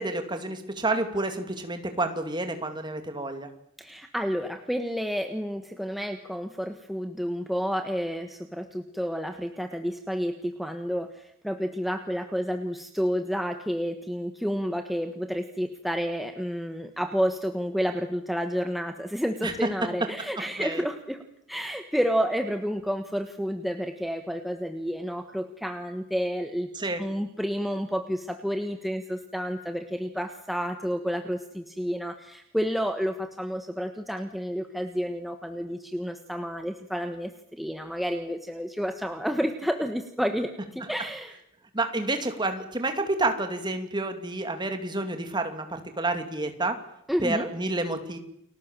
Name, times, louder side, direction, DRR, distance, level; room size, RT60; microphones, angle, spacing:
voice 1, 0.0-3.5 19.4-19.7 20.6-20.8 26.7-27.0 41.7-46.8 47.2-48.2, right 2 dB, 20° right, 6 dB, 2.7 m, -29 dB
voice 2, 3.8-26.7 27.0-41.4 47.1-47.5, equal, ahead, 6 dB, 1.3 m, -30 dB
30.0 x 20.5 x 7.5 m, 0.76 s
head